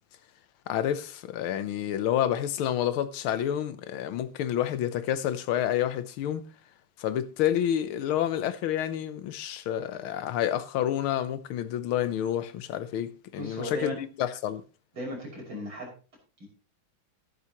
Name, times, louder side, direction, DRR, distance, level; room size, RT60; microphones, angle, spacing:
voice 1, 0.7-6.4 7.0-14.6, left 10 dB, 85° left, 1.7 m, -29 dB
voice 2, 13.4-14.0 14.9-15.9 16.4-16.5, equal, 70° right, 6.8 m, -36 dB
13.5 x 11.0 x 3.0 m
omnidirectional pair, 2.3 m